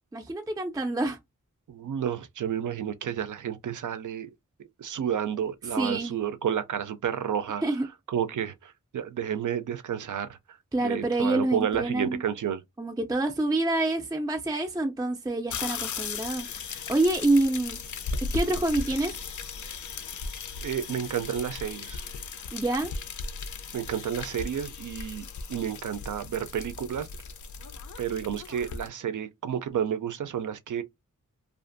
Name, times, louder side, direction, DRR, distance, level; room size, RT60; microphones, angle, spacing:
voice 1, 0.1-1.2 5.8-6.2 7.6-7.9 10.7-12.2 12.8-17.8 18.3-19.1 22.5-22.9, right 2 dB, 10° right, 0.4 m, -27 dB
voice 2, 1.7-4.3 4.6-7.6 8.1-10.4 10.8-12.6 20.6-22.1 23.7-27.1 28.0-30.8, right 9 dB, 70° right, 0.5 m, -31 dB
sound 1, 15.5-28.9, left 4 dB, 70° left, 0.4 m, -37 dB
2.5 x 2.5 x 2.5 m
wide cardioid pair, 85°, 32 cm